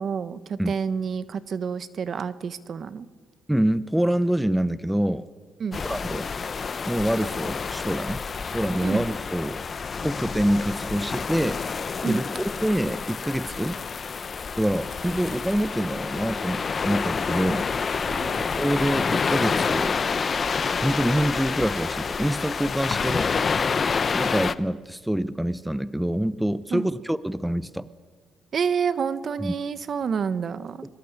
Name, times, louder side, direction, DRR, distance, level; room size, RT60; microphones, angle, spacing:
voice 1, 0.0-3.1 5.6-5.8 8.8-9.0 12.0-12.2 18.1-18.5 26.7-26.9 28.5-30.9, right 6 dB, 55° right, 14 dB, 1.3 m, -29 dB
voice 2, 3.5-5.3 5.8-6.3 6.9-8.2 8.5-9.6 10.0-11.6 12.0-13.8 14.6-18.0 18.6-20.0 20.8-23.3 24.1-27.9 29.4-29.5, right 1 dB, 5° right, 15 dB, 0.8 m, -26 dB
sound 1, 5.7-24.5, left 5 dB, 40° left, 0.9 m, -28 dB
25.5 x 23.0 x 8.3 m, 1.4 s
cardioid pair, 90°, 0 cm